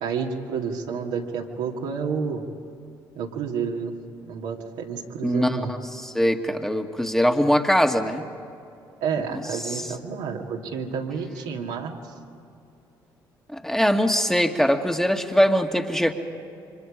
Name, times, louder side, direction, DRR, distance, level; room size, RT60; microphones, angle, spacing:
voice 1, 0.0-2.4 3.2-3.9 4.3-5.7 9.0-12.1, right 6 dB, 75° right, -1 dB, 2.3 m, -30 dB
voice 2, 5.2-5.6 5.9-8.3 9.7-9.8 13.5-16.1, equal, 5° left, 4 dB, 1.9 m, -22 dB
28.5 x 25.0 x 5.1 m, 2.7 s
hypercardioid pair, 50°, 11 cm